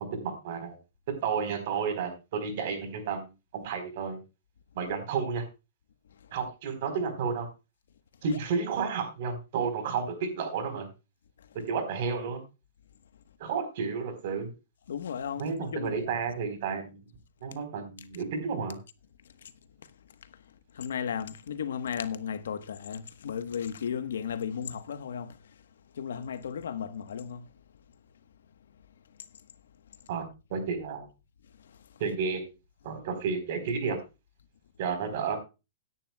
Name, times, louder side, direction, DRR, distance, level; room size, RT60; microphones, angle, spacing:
voice 1, 0.1-0.8 1.2-3.3 3.5-4.2 4.7-5.4 6.3-7.5 8.2-10.9 11.7-12.4 13.4-14.5 15.4-17.0 17.4-18.8 30.1-30.2 30.5-31.1 32.0-32.4 32.8-34.0 34.8-35.4, right 5 dB, 50° right, 4.0 m, -31 dB
voice 2, 14.9-16.2 19.4-19.5 20.7-25.4 25.9-27.5, left 7 dB, 85° left, 1.2 m, -35 dB
17.0 x 10.0 x 2.3 m
hypercardioid pair, 160°, 0 cm